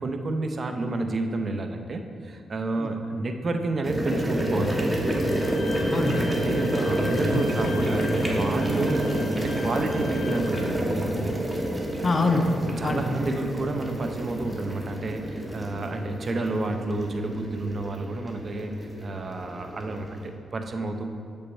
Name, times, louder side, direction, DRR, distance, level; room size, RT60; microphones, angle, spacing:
voice 1, 0.0-5.1 6.3-11.3 12.8-21.0, right 2 dB, 45° right, 5 dB, 0.6 m, -30 dB
sound 1, 3.8-20.3, right 1 dB, 10° right, 1.2 m, -28 dB
Bowed string instrument, 5.3-10.4, left 3 dB, 85° left, 1.9 m, -41 dB
voice 2, 5.9-6.3 12.0-13.0, left 2 dB, 35° left, 4 dB, 0.7 m, -24 dB
7.9 x 5.3 x 4.3 m, 2.2 s
cardioid pair, 85°, 0 cm